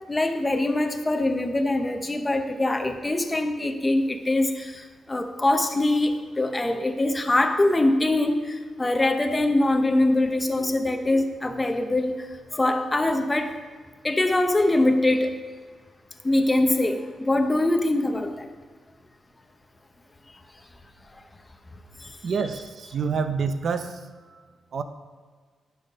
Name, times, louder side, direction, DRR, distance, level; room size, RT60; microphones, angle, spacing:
voice 1, 0.1-13.5 14.0-15.3 16.2-18.5 22.0-22.1, left 1 dB, 15° left, 6 dB, 0.8 m, -23 dB
voice 2, 22.2-24.0 24.3-24.4 24.7-24.8, right 5 dB, 55° right, 9 dB, 0.7 m, -27 dB
10.5 x 5.8 x 5.3 m, 1.5 s
cardioid pair, 120°, 0 cm